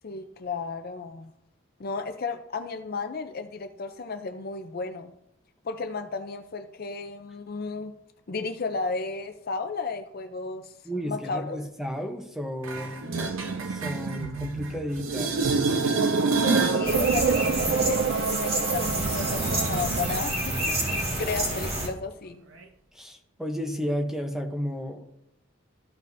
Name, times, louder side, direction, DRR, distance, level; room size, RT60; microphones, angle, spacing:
voice 1, 0.0-1.3 1.8-5.1 5.6-7.9 8.3-10.7 11.1-11.6 16.6-22.4, left 4 dB, 50° left, 8 dB, 0.5 m, -33 dB
voice 2, 10.8-13.1 13.7-15.4 22.9-25.1, equal, ahead, 3 dB, 0.8 m, -32 dB
sound 1, 12.6-14.7 15.0-16.9 22.6-22.7, right 3 dB, 90° right, 0.8 m, -28 dB
sound 2, 13.1-20.2, right 5 dB, 55° right, 0.3 m, -28 dB
sound 3, 16.8-21.9, right 1 dB, 30° right, 1.9 m, -28 dB
13.5 x 5.3 x 2.6 m, 0.78 s
head